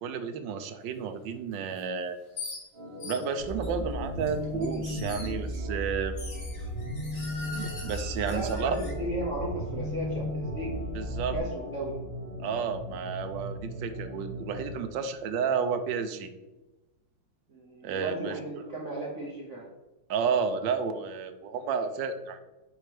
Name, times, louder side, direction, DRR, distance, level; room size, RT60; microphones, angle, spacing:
voice 1, 0.0-2.2 3.0-6.2 7.5-8.8 10.9-11.4 12.4-16.3 17.8-18.3 20.1-22.4, right 6 dB, 70° right, 9 dB, 1.2 m, -31 dB
sound 1, 1.8-1.9 2.4-2.6 3.0-3.7 4.3-5.6 6.2-8.9, left 3 dB, 60° left, 2.6 m, -42 dB
Organ, 2.7-14.9, left 1 dB, 30° right, 1.7 m, -41 dB
sound 2, 3.4-11.4, equal, 80° left, 2.8 m, -35 dB
voice 2, 8.3-10.7 11.3-11.9 17.5-19.7, right 1 dB, 50° right, -2 dB, 1.0 m, -35 dB
9.0 x 3.1 x 5.0 m, 1.1 s
omnidirectional pair, 2.2 m